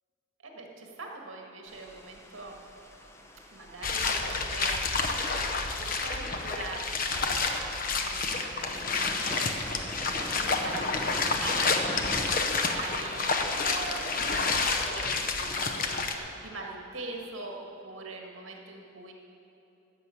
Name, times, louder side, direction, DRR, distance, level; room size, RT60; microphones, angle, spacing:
voice 1, 0.4-2.6 3.5-13.3 13.6-19.1, right 2 dB, 75° right, 0 dB, 1.9 m, -43 dB
sound 1, 1.7-12.4, equal, 15° left, 0.8 m, -45 dB
sound 2, 3.8-16.1, left 4 dB, 45° left, 0.8 m, -29 dB
13.5 x 6.1 x 8.4 m, 2.9 s
head